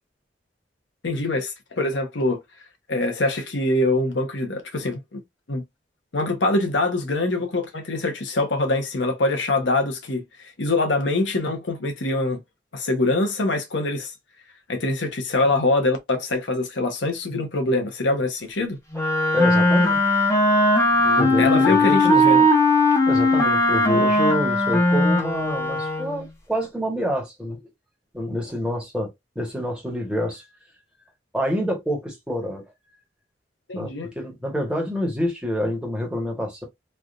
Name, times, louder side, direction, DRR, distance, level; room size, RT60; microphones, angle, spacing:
voice 1, 1.0-2.4 2.9-5.2 5.5-5.6 6.1-12.4 12.7-14.1 14.7-18.8 21.0-22.5 33.7-34.1, left 2 dB, 90° left, 0.9 m, -24 dB
Wind instrument woodwind instrument, 18.9-26.3, left 1 dB, 15° left, 0.8 m, -19 dB
voice 2, 19.3-20.1 21.2-22.5 23.1-27.6 28.1-30.4 31.3-32.7 33.7-36.6, equal, 5° right, 1.1 m, -27 dB
3.3 x 2.4 x 2.5 m
head